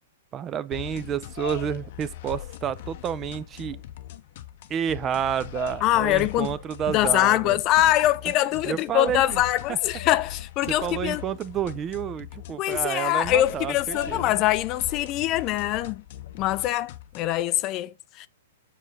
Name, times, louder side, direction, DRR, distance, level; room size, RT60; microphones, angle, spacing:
voice 1, 0.3-3.8 4.7-7.6 8.7-9.4 9.7-9.8 10.7-14.4, right 9 dB, 25° right, 0.5 m, -30 dB
sound 1, 0.7-17.4, left 11 dB, 55° left, 0.7 m, -40 dB
voice 2, 5.8-6.5 6.9-11.2 12.6-16.0 16.3-18.3, left 14 dB, 35° left, 0.4 m, -23 dB
7.3 x 4.0 x 3.9 m
hypercardioid pair, 135°, 0 cm